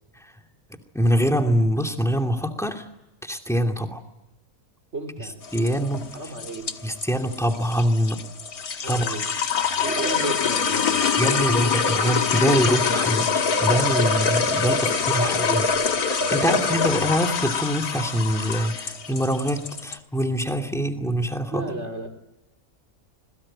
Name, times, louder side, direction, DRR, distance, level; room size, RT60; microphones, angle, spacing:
voice 1, 0.9-2.9 3.2-4.0 5.5-6.1 6.8-8.2 8.9-9.1 11.2-15.7 16.3-21.6, equal, ahead, 3 dB, 2.5 m, -24 dB
voice 2, 4.9-5.4 6.1-6.8 8.8-9.4 9.8-11.2 14.7-15.7 16.4-16.8 21.5-22.1, right 3 dB, 50° right, 5 dB, 3.7 m, -34 dB
sound 1, 5.4-20.0, left 5 dB, 90° left, 2.0 m, -24 dB
26.5 x 22.0 x 8.9 m, 0.95 s
omnidirectional pair, 1.5 m